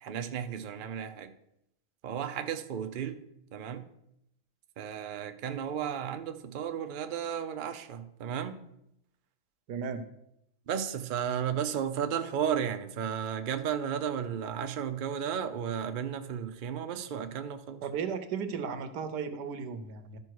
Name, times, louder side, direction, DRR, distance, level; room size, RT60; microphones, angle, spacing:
voice 1, 0.0-1.3 2.0-3.2 3.5-3.9 4.8-8.6 10.7-17.9, right 8 dB, 60° right, 0.5 m, -34 dB
voice 2, 9.7-10.0 17.8-20.2, right 6 dB, 85° right, 1.4 m, -35 dB
12.5 x 5.4 x 4.6 m
omnidirectional pair, 1.7 m